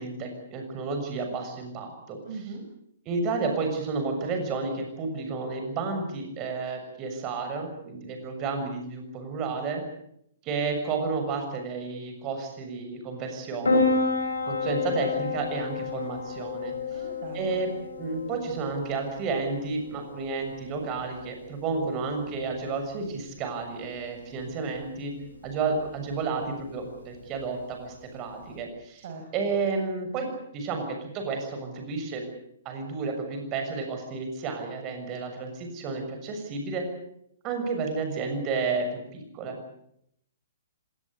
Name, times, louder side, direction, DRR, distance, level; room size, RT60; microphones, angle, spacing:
voice 1, 0.0-2.2 3.1-9.8 10.4-13.8 14.5-16.7 17.3-17.7 18.0-25.1 25.4-29.0 29.3-32.3 32.7-36.9 37.4-39.6, right 4 dB, 30° right, 5 dB, 6.9 m, -31 dB
voice 2, 2.3-2.6 16.9-17.6 29.0-29.2, right 4 dB, 50° right, 3 dB, 5.0 m, -39 dB
Piano, 13.6-28.6, left 3 dB, 85° left, 7.7 m, -32 dB
26.0 x 19.0 x 8.3 m, 0.73 s
figure-of-eight pair, 120°, 0 cm